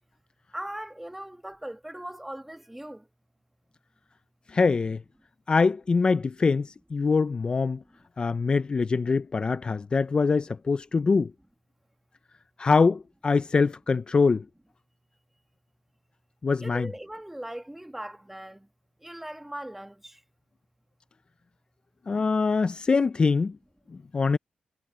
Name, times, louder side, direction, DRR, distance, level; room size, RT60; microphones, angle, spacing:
voice 1, 0.5-3.0 16.6-18.7 19.0-20.2, right 1 dB, 10° right, 1.6 m, -39 dB
voice 2, 4.5-5.0 5.5-7.8 8.2-11.3 12.6-14.4 16.4-16.9 22.1-23.5 24.1-24.4, left 4 dB, 35° left, 0.4 m, -23 dB
cardioid pair, 90°, 3 cm